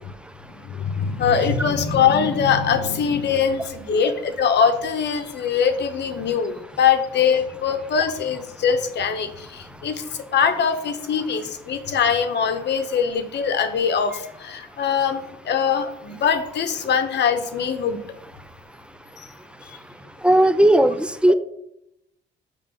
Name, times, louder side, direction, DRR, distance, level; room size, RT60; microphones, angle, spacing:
voice 1, 0.6-10.0 10.3-18.0 19.2-19.3, left 7 dB, 60° left, 8 dB, 0.9 m, -22 dB
voice 2, 20.2-21.3, right 1 dB, 5° right, 12 dB, 0.4 m, -16 dB
5.4 x 3.3 x 5.3 m, 0.77 s
cardioid pair, 90°, 20 cm